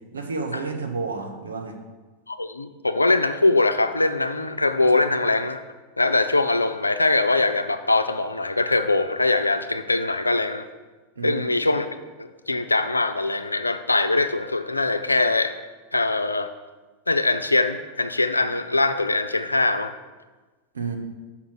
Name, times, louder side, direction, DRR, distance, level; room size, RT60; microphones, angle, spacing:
voice 1, 0.1-1.8 11.2-11.4 20.7-21.0, right 4 dB, 80° right, 4 dB, 0.9 m, -30 dB
voice 2, 2.3-5.6 6.0-10.6 11.2-11.9 12.2-15.5 15.9-16.5 17.1-19.9, left 2 dB, 90° left, 9 dB, 0.5 m, -22 dB
6.0 x 5.9 x 5.8 m, 1.3 s
figure-of-eight pair, 90°, 0 cm